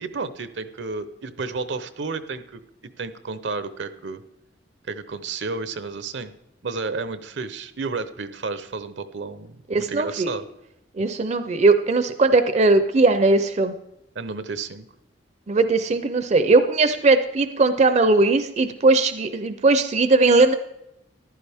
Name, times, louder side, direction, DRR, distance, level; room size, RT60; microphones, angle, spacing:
voice 1, 0.0-2.6 3.0-4.2 4.9-6.3 6.6-10.4 14.1-14.9, right 4 dB, 70° right, 12 dB, 0.7 m, -31 dB
voice 2, 9.7-10.3 11.0-13.7 15.5-20.5, right 3 dB, 40° right, 10 dB, 0.5 m, -19 dB
14.0 x 11.5 x 3.5 m, 0.85 s
head